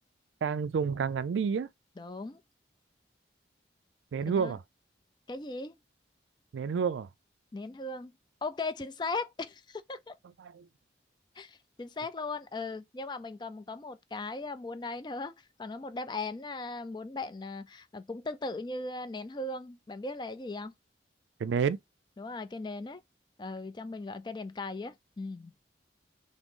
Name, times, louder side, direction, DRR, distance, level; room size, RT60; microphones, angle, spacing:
voice 1, 0.4-1.7 4.1-4.6 6.5-7.1 10.4-10.6 21.4-21.8, right 6 dB, 85° right, 0.4 m, -29 dB
voice 2, 2.0-2.4 4.3-4.6 5.3-5.7 7.5-8.1 8.4-10.1 11.4-20.7 22.2-23.0 23.4-25.5, left 3 dB, 25° left, 0.4 m, -38 dB
6.0 x 2.0 x 3.7 m
head